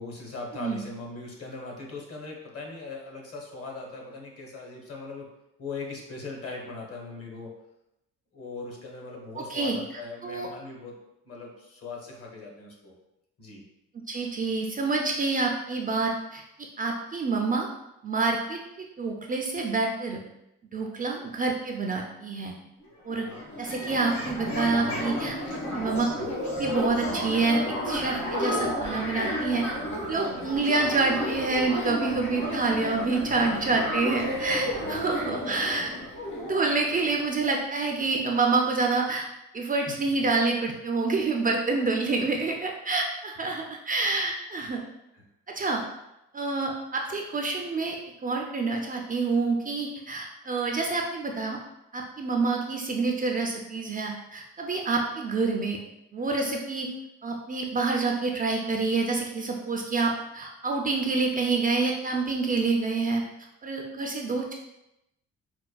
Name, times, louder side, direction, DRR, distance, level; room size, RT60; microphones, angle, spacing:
voice 1, 0.0-5.3 5.6-7.5 8.3-10.9 11.2-12.9 13.4-13.6 34.8-35.2 39.9-40.0 43.4-43.5 45.1-45.2, left 3 dB, 50° left, -1 dB, 1.0 m, -40 dB
voice 2, 9.4-9.8 10.2-10.5 14.1-16.4 16.8-17.7 18.0-18.6 19.0-20.2 20.7-22.5 23.1-23.3 23.6-25.4 25.7-29.7 30.1-35.9 36.4-39.3 39.5-44.8 45.5-45.8 46.3-48.0 48.2-51.6 51.9-55.8 56.1-56.9 57.2-63.2 63.6-64.5, right 3 dB, 30° right, 1 dB, 0.4 m, -27 dB
sound 1, 22.8-22.9 23.1-37.7, equal, 70° left, 1.2 m, -32 dB
4.4 x 2.2 x 2.2 m, 0.86 s
cardioid pair, 90°, 30 cm